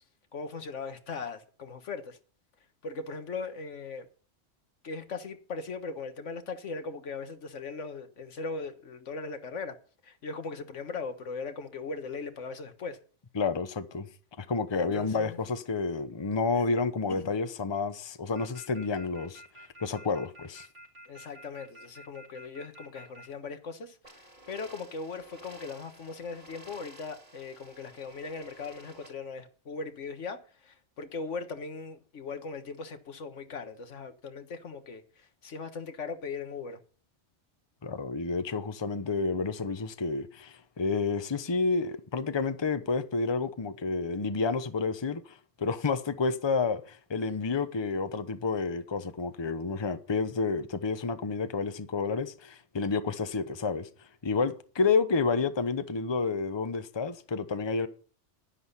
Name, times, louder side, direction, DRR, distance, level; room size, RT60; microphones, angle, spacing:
voice 1, 0.3-2.2 2.8-4.1 4.8-9.8 10.0-13.0 14.7-15.4 16.5-16.7 17.1-17.3 21.1-36.8, left 4 dB, 80° left, 1.6 m, -39 dB
voice 2, 13.3-14.1 14.4-19.4 19.8-20.7 37.8-53.9 54.2-57.9, left 4 dB, 25° left, 0.8 m, -30 dB
sound 1, 18.4-23.3, equal, 75° right, 3.6 m, -49 dB
sound 2, 24.0-29.1, right 1 dB, 40° right, 4.6 m, -52 dB
11.0 x 10.0 x 5.6 m
omnidirectional pair, 1.2 m